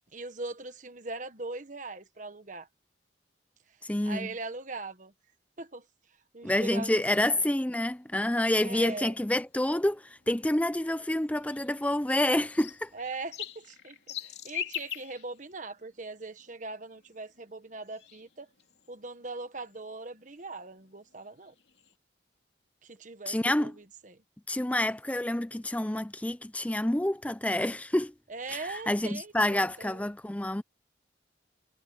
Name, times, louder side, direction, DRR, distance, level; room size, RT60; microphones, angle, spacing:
voice 1, 0.1-2.7 4.0-5.1 5.6-5.8 6.3-7.0 7.3-7.5 8.6-9.1 12.9-18.5 18.9-21.5 22.8-24.2 28.3-30.1, right 3 dB, 45° right, 1.4 m, -41 dB
voice 2, 3.8-4.3 6.4-12.9 23.3-23.7 24.5-28.1 28.5-30.6, left 1 dB, 10° left, 0.5 m, -28 dB
sound 1, 6.6-21.9, left 10 dB, 60° left, 3.5 m, -46 dB
head